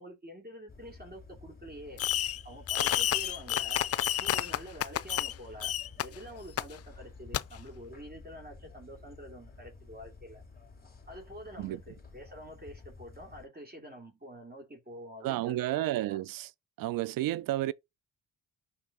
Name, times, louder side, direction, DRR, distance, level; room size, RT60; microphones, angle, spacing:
voice 1, 0.0-2.0 2.4-5.7 6.0-10.4 11.1-15.8 16.1-16.2, equal, 25° right, 2.5 m, -47 dB
sound 1, 0.7-13.5, left 4 dB, 25° left, 3.0 m, -52 dB
Fireworks, 2.0-2.4 2.7-5.3 5.6-6.0 6.6-6.7 7.3-7.4, left 12 dB, 40° left, 0.4 m, -30 dB
voice 2, 15.2-16.5 16.8-17.7, right 15 dB, 70° right, 0.5 m, -31 dB
5.6 x 4.6 x 4.0 m
supercardioid pair, 55°, 36 cm